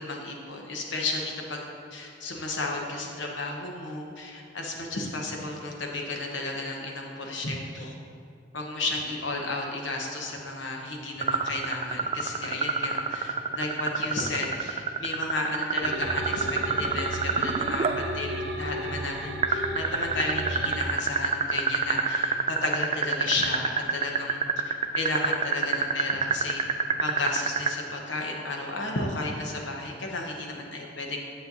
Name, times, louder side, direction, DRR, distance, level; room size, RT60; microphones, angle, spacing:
voice 1, 0.0-1.6 1.9-7.9 8.5-26.6 27.0-31.2, left 2 dB, 90° left, 0 dB, 1.0 m, -33 dB
sound 1, 11.2-18.0 19.4-27.7, right 6 dB, 30° right, 0.3 m, -26 dB
sound 2, 15.8-20.8, right 1 dB, 75° right, 0.6 m, -34 dB
9.6 x 7.7 x 2.7 m, 2.3 s
head